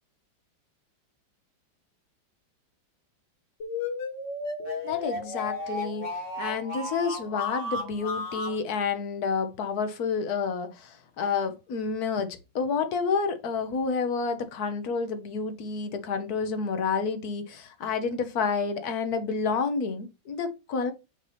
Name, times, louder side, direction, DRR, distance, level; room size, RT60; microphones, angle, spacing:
sound 1, 3.6-8.6, left 2 dB, 40° left, 1.7 m, -34 dB
voice 1, 4.8-20.9, left 5 dB, 60° left, 1.2 m, -29 dB
6.2 x 2.8 x 5.5 m
omnidirectional pair, 2.1 m